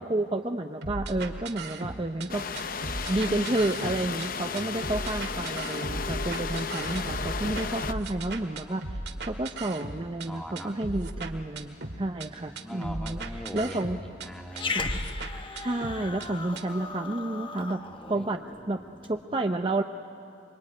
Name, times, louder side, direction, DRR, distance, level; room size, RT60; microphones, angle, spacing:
voice 1, 0.0-2.5 3.1-9.0 9.3-13.2 13.5-14.0 14.7-14.9 15.6-17.8 18.1-18.4 18.7-18.8 19.1-19.8, right 2 dB, 30° right, 5 dB, 0.7 m, -30 dB
sound 1, 0.8-2.3 2.5-4.3 4.6-10.3 10.6-12.3 12.6-14.3 14.6-16.3 16.6-16.7, right 2 dB, 65° right, 1.9 m, -36 dB
sound 2, 2.3-7.9, left 5 dB, 50° left, 0.8 m, -34 dB
voice 2, 4.4-4.8 8.9-9.4 10.3-10.8 12.4-14.8 16.0-16.2 17.8-18.3 19.1-19.6, equal, 5° left, 3 dB, 1.9 m, -43 dB
Growling, 14.5-19.2, left 3 dB, 25° left, 1.2 m, -37 dB
25.5 x 24.0 x 9.6 m, 2.8 s
head